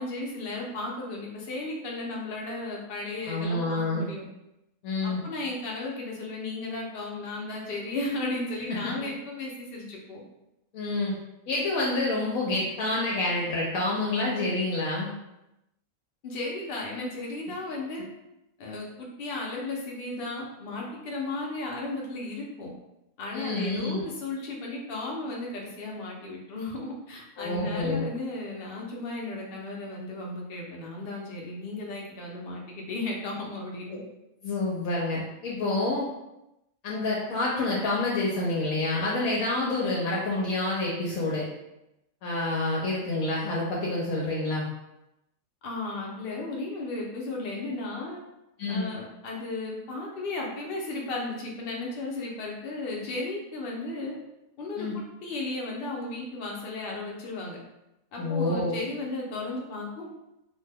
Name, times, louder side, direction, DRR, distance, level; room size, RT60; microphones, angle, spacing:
voice 1, 0.0-4.2 5.0-10.2 16.2-18.1 18.6-22.7 23.2-34.0 45.6-48.2 48.7-54.1 54.6-57.6 58.1-60.1, left 2 dB, 55° left, -2 dB, 0.7 m, -35 dB
voice 2, 3.2-4.1 4.8-5.2 8.8-8.9 10.7-11.2 11.5-15.1 23.3-24.0 27.4-28.0 33.9-34.0 34.4-36.1 36.8-41.5 42.2-44.6 48.6-48.9 54.8-54.9 58.2-58.7, left 2 dB, 80° left, -4 dB, 1.0 m, -28 dB
2.8 x 2.2 x 3.3 m, 0.90 s
omnidirectional pair, 1.5 m